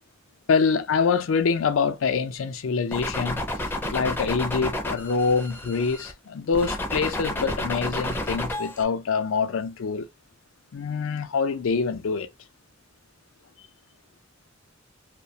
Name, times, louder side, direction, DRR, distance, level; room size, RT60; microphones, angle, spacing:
voice 1, 0.5-3.4 3.9-10.1 10.7-12.3, left 5 dB, 70° left, 0.4 m, -25 dB
sound 1, 2.9-6.1 6.5-8.8, left 1 dB, 10° left, 0.5 m, -30 dB
2.3 x 2.1 x 2.7 m
head